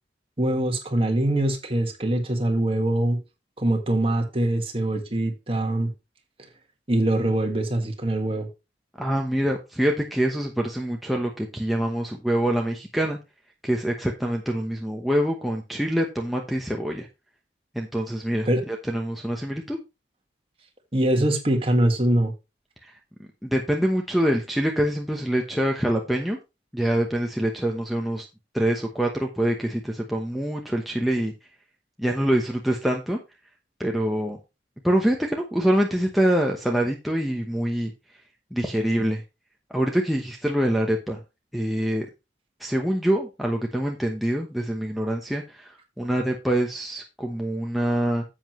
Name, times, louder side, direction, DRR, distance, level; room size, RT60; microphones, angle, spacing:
voice 1, 0.4-3.2 3.6-5.9 6.9-8.5 18.5-18.6 20.9-22.3, right 1 dB, 30° right, 1.8 m, -23 dB
voice 2, 9.0-13.2 13.6-17.1 17.7-19.8 23.4-26.4 26.7-28.3 28.5-31.3 32.0-33.2 33.8-34.4 34.8-37.9 38.5-39.2 39.7-41.2 41.5-42.1 42.6-48.2, right 1 dB, ahead, 0.9 m, -25 dB
9.8 x 7.7 x 3.1 m
head